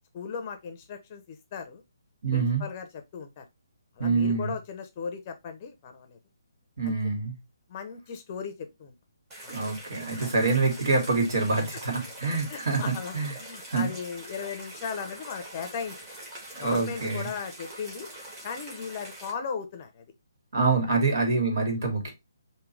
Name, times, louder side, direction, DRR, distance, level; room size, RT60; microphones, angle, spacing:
voice 1, 0.1-1.8 2.3-3.4 4.0-6.2 6.8-7.0 7.7-8.9 9.4-9.5 10.2-10.3 12.5-16.0 16.6-18.1 18.4-20.0 20.9-21.0, left 6 dB, 30° left, 0.7 m, -37 dB
voice 2, 2.2-2.6 4.0-4.5 6.8-7.3 9.5-13.3 13.7-13.9 16.5-17.3 20.5-22.1, right 4 dB, 60° right, 2.3 m, -26 dB
sound 1, 9.3-19.3, right 1 dB, 20° right, 2.0 m, -44 dB
5.1 x 2.8 x 3.2 m
hypercardioid pair, 160°, 2 cm